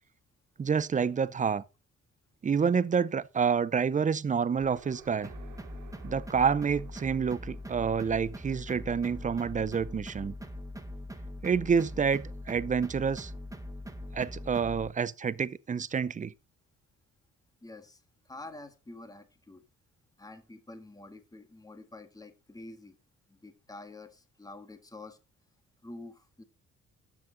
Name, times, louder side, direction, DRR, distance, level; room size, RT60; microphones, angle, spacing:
voice 1, 0.6-1.6 2.4-5.3 6.0-10.3 11.4-13.3 14.1-16.3, right 6 dB, 25° right, 0.5 m, -28 dB
sound 1, 4.6-10.2, right 7 dB, 85° right, 2.8 m, -55 dB
sound 2, 5.2-14.9, left 1 dB, 10° right, 1.2 m, -42 dB
voice 2, 17.6-19.6 20.2-23.0 23.3-25.2 25.8-26.4, left 2 dB, 10° left, 1.5 m, -48 dB
12.0 x 6.1 x 3.8 m
cardioid pair, 90°, 30 cm